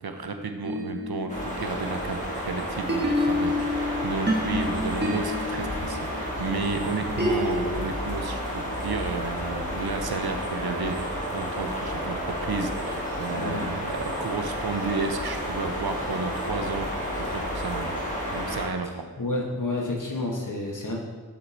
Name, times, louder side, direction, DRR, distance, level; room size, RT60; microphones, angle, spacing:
voice 1, 0.0-16.9 17.2-18.0 18.3-19.0, right 4 dB, 75° right, 6 dB, 0.8 m, -32 dB
sound 1, 0.6-2.4 2.9-7.7, left 1 dB, 30° right, 1.2 m, -29 dB
sound 2, 1.3-18.6, equal, 20° left, 2.3 m, -31 dB
voice 2, 13.4-13.7 19.2-21.0, left 2 dB, 55° left, -1 dB, 1.5 m, -29 dB
7.7 x 4.7 x 4.3 m, 1.3 s
wide cardioid pair, 45°, 38 cm